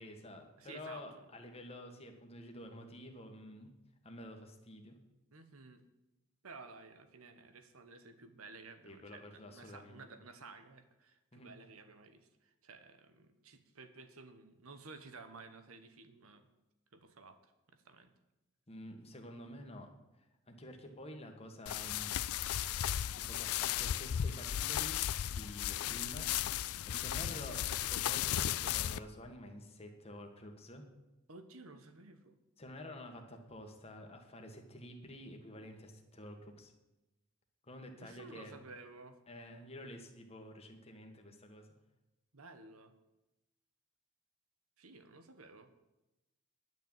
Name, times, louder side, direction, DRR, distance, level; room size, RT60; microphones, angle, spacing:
voice 1, 0.0-3.7 4.0-5.0 8.8-10.0 11.3-11.5 18.7-19.9 20.5-22.1 23.1-25.0 25.3-26.3 26.9-30.8 32.6-36.7 37.7-38.5 39.3-41.7, left 1 dB, 30° left, 3 dB, 1.6 m, -49 dB
voice 2, 0.6-1.0 5.3-5.8 6.4-12.3 12.6-16.5 16.9-17.4 17.8-18.1 25.8-26.3 31.3-32.4 38.0-39.2 42.3-42.9 44.8-45.7, right 3 dB, 75° right, 9 dB, 1.2 m, -54 dB
sound 1, 21.7-29.0, left 11 dB, 85° left, 0.4 m, -35 dB
10.5 x 6.2 x 8.9 m, 0.98 s
head